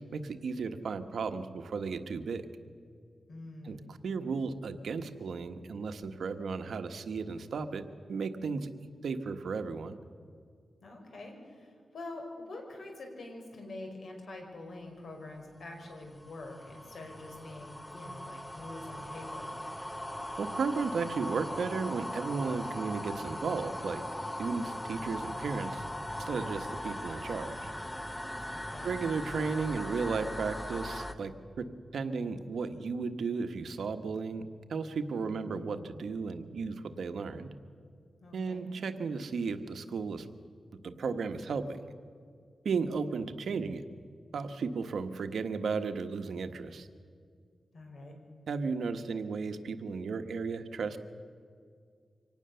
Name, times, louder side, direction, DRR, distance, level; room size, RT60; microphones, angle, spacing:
voice 1, 0.0-2.4 3.6-7.8 8.1-8.7 9.0-10.0 20.4-24.0 24.4-25.8 26.2-27.7 28.8-31.7 31.9-34.4 34.7-37.5 38.3-40.3 40.8-41.8 42.6-43.8 44.3-46.9 48.5-51.0, right 5 dB, 80° right, 8 dB, 1.3 m, -34 dB
voice 2, 3.3-3.9 10.8-19.5 28.5-28.9 35.2-35.6 38.2-38.7 47.7-48.2, left 2 dB, 65° left, 2 dB, 5.4 m, -45 dB
sound 1, 15.6-31.1, left 1 dB, 10° left, 1.2 m, -39 dB
25.0 x 18.5 x 7.0 m, 2.1 s
wide cardioid pair, 105°, 0 cm